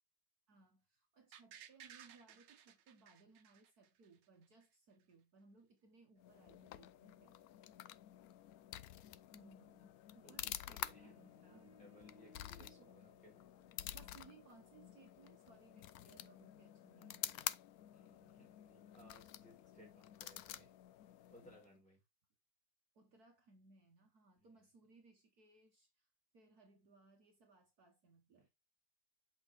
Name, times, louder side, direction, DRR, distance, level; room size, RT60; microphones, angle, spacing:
voice 1, 0.5-7.4 9.3-11.8 12.6-12.9 13.9-17.4 22.9-26.1 26.3-28.5, right 4 dB, 60° right, 1.7 m, -65 dB
sound 1, 1.3-4.2 4.6-4.7, right 9 dB, 75° right, 1.5 m, -58 dB
sound 2, 6.2-21.8, left 12 dB, 70° left, 0.9 m, -50 dB
voice 2, 10.2-11.1 11.8-13.5 17.9-20.7 21.3-22.0 24.4-24.5 28.4-28.5, equal, 5° left, 4.6 m, -64 dB
sound 3, 10.3-14.3, equal, 15° right, 0.5 m, -68 dB
8.1 x 5.6 x 3.6 m
omnidirectional pair, 1.9 m